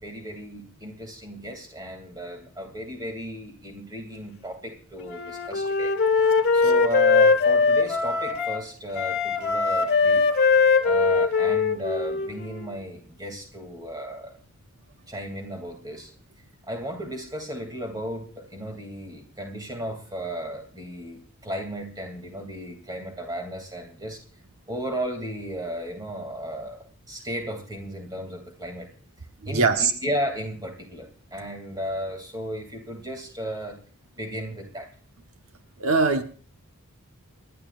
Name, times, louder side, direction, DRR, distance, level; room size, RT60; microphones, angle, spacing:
voice 1, 0.0-5.9 6.5-10.2 10.8-14.3 15.1-16.1 16.7-24.2 24.7-28.9 29.5-33.8 34.2-34.9, equal, 15° right, 2.6 m, -34 dB
Wind instrument woodwind instrument, 5.1-8.6 8.9-12.7, left 4 dB, 45° left, 1.6 m, -21 dB
voice 2, 29.5-29.9 35.8-36.2, right 4 dB, 75° right, 1.1 m, -20 dB
29.0 x 11.5 x 2.5 m
head